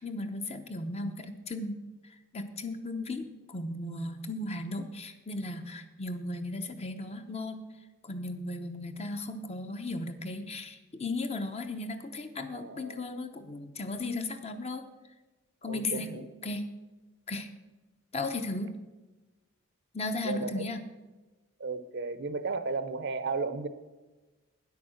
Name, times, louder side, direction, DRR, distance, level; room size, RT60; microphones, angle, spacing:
voice 1, 0.0-1.8 2.3-7.6 8.0-14.9 15.6-16.7 17.3-17.5 18.1-18.8 19.9-20.8, left 2 dB, 30° left, 7 dB, 0.8 m, -36 dB
voice 2, 12.5-13.1 15.7-16.5 20.2-20.7 21.6-23.7, right 4 dB, 55° right, 12 dB, 0.7 m, -34 dB
9.9 x 8.5 x 6.4 m, 1.2 s
head